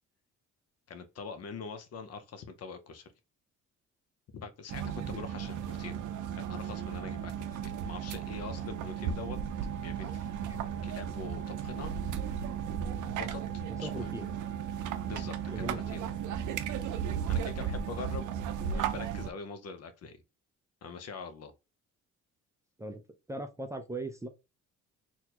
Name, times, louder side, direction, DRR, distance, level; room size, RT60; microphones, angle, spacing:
voice 1, 0.9-3.1 4.3-6.0 6.3-9.4 9.8-10.3 10.8-11.9 13.2-13.4 13.8-14.1 15.1-16.0 17.3-18.3 18.6-20.2 20.8-21.5, left 5 dB, 55° left, 0.7 m, -43 dB
sound 1, 4.7-19.3, right 8 dB, 80° right, 0.5 m, -35 dB
voice 2, 13.8-14.3 15.5-16.1 22.8-23.0 23.3-24.3, right 1 dB, 10° right, 0.4 m, -39 dB
4.2 x 2.2 x 2.9 m
cardioid pair, 90°, 30 cm